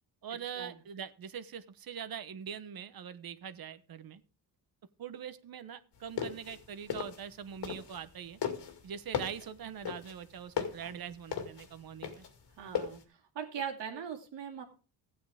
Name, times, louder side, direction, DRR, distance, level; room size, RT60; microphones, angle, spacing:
voice 1, 0.2-4.2 5.0-8.4 8.8-12.2, right 8 dB, 55° right, 13 dB, 1.1 m, -43 dB
sound 1, 6.0-8.1 8.4-13.0, left 8 dB, 70° left, 2.2 m, -37 dB
voice 2, 12.6-13.0 13.3-14.6, right 7 dB, 75° right, 3 dB, 2.5 m, -40 dB
14.0 x 8.6 x 3.5 m, 0.35 s
cardioid pair, 80°, 43 cm